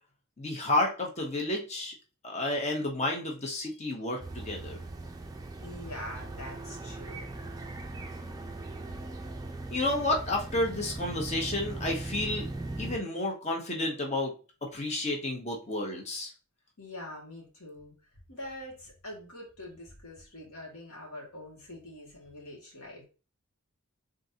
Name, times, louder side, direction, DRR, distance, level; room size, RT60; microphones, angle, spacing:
voice 1, 0.4-1.9 2.2-4.8 9.7-12.4 12.8-14.3 14.6-16.3, left 2 dB, 30° left, 0 dB, 0.9 m, -31 dB
sound 1, 4.2-13.0, right 2 dB, 15° right, 0.4 m, -39 dB
voice 2, 5.6-7.3 16.8-17.9 18.3-23.0, left 1 dB, 80° left, -1 dB, 1.9 m, -44 dB
3.8 x 3.7 x 2.8 m, 0.34 s
head